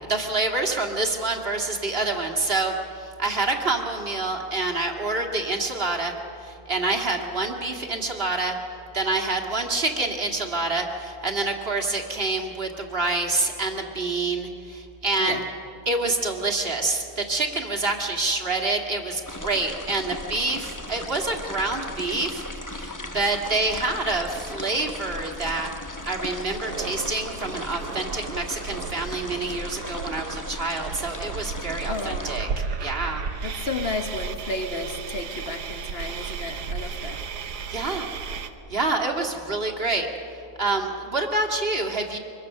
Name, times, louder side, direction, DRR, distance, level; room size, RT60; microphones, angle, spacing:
voice 1, 0.0-6.1 6.4-8.6 8.9-15.4 15.9-25.7 26.1-33.2 36.9-37.0 37.7-38.1 38.7-40.1 40.6-42.2, right 2 dB, 40° right, 1 dB, 2.2 m, -27 dB
sound 1, 19.3-32.4, left 1 dB, 15° left, 0.7 m, -37 dB
sound 2, 26.6-38.5, right 5 dB, 90° right, 1.6 m, -34 dB
voice 2, 31.9-32.3 33.4-37.2 37.6-37.7, left 2 dB, 40° left, 6 dB, 1.5 m, -32 dB
24.0 x 23.0 x 6.6 m, 2.8 s
omnidirectional pair, 1.7 m